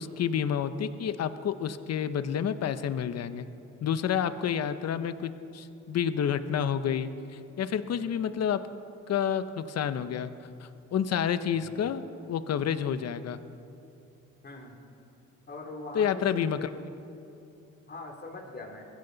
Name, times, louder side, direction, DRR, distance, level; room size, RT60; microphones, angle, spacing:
voice 1, 0.0-3.5 3.8-8.6 9.1-10.3 10.6-12.0 12.3-13.4 15.9-16.7, left 8 dB, 55° left, 12 dB, 0.9 m, -29 dB
voice 2, 11.5-11.9 14.4-14.8 15.5-16.7 17.9-18.9, left 2 dB, 35° left, 1 dB, 3.1 m, -42 dB
22.0 x 16.0 x 4.0 m, 2.9 s
cardioid pair, 90°, 30 cm